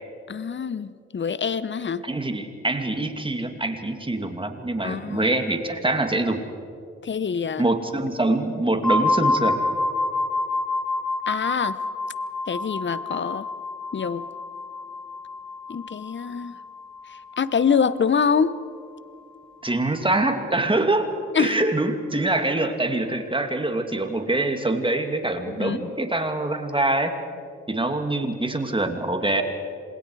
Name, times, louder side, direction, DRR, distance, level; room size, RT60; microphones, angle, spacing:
voice 1, 0.3-2.0 4.8-5.3 7.0-7.6 11.3-11.8 12.5-13.5 13.9-14.2 15.7-16.6 17.4-18.5 21.3-21.7 25.5-25.9, left 6 dB, 40° left, 16 dB, 1.0 m, -25 dB
voice 2, 2.0-6.4 7.6-9.6 19.6-21.1 21.4-27.1 27.7-29.4, right 2 dB, 15° right, 5 dB, 2.6 m, -24 dB
sound 1, 8.8-18.5, left 2 dB, 5° left, 2.1 m, -28 dB
27.0 x 20.5 x 4.9 m, 2.4 s
hypercardioid pair, 45°, 30 cm